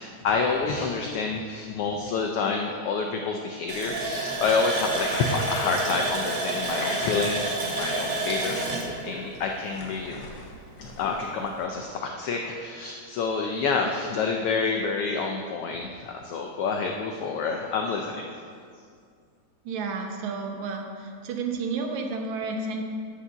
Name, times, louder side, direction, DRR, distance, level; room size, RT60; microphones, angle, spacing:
voice 1, 0.0-10.2 11.0-18.3, left 4 dB, 90° left, 2 dB, 1.2 m, -28 dB
Water tap faucet, 3.7-10.2 10.5-10.6 11.1-11.2, right 2 dB, 50° right, 2.3 m, -29 dB
sound 1, 4.9-6.0 6.7-7.1 7.6-7.9 8.4-8.7 9.3-11.9, left 4 dB, 65° left, 1.5 m, -41 dB
voice 2, 19.7-22.8, right 4 dB, 80° right, 3 dB, 2.2 m, -31 dB
10.0 x 4.9 x 6.8 m, 2.2 s
omnidirectional pair, 3.3 m